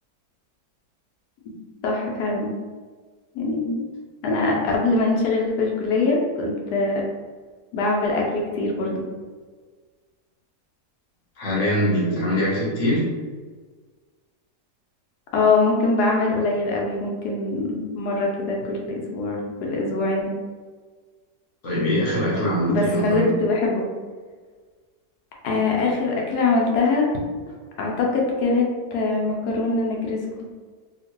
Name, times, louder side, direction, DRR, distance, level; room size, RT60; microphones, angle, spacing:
voice 1, 1.8-2.5 3.3-3.8 4.2-7.0 7.7-9.0 15.3-20.3 22.7-23.9 25.4-27.1 27.8-30.5, left 3 dB, 80° left, -1 dB, 1.2 m, -23 dB
voice 2, 11.4-13.0 21.6-23.3, equal, 55° left, -5 dB, 1.1 m, -22 dB
2.9 x 2.8 x 2.9 m, 1.5 s
omnidirectional pair, 1.7 m